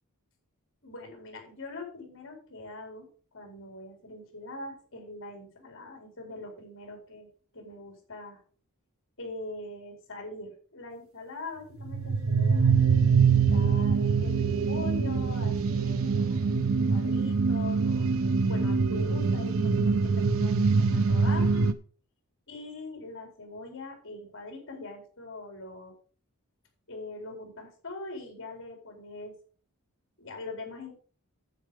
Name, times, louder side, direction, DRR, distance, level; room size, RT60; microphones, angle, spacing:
voice 1, 0.8-3.1 3.3-7.3 7.5-8.4 9.2-18.1 18.5-21.7 22.5-26.0 26.9-29.4 30.2-30.9, left 2 dB, 60° left, 2 dB, 4.4 m, -42 dB
sound 1, 11.9-21.7, right 5 dB, 65° right, 0.8 m, -24 dB
9.9 x 7.7 x 5.1 m, 0.41 s
head